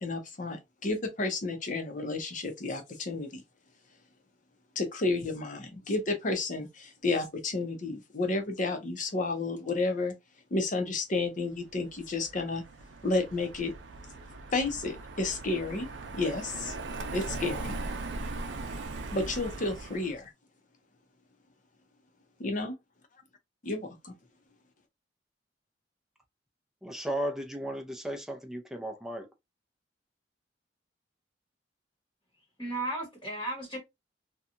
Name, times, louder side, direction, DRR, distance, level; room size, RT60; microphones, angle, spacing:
voice 1, 0.0-3.4 4.8-10.1 10.5-12.6 13.0-13.7 14.5-15.9 16.1-16.7 17.1-17.7 19.1-20.3 22.4-22.7 23.6-24.1, left 3 dB, 45° left, 0.7 m, -31 dB
Car passing by, 11.7-20.2, right 3 dB, 85° right, 0.5 m, -39 dB
voice 2, 26.8-29.3, right 1 dB, 5° right, 0.5 m, -35 dB
voice 3, 32.6-33.8, right 1 dB, 25° left, 1.0 m, -34 dB
2.8 x 2.3 x 2.5 m
head